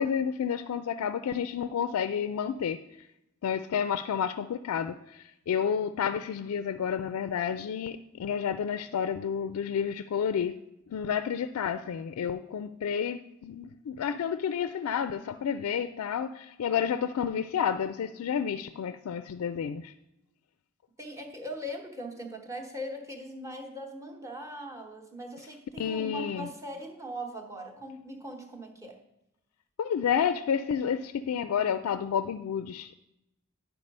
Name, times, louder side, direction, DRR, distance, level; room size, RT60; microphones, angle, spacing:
voice 1, 0.0-2.8 3.4-10.5 10.9-19.9 25.8-26.5 29.8-32.9, left 7 dB, 80° left, 12 dB, 0.3 m, -30 dB
voice 2, 21.0-29.0, equal, 15° right, 3 dB, 1.0 m, -40 dB
11.0 x 4.6 x 5.3 m, 0.86 s
head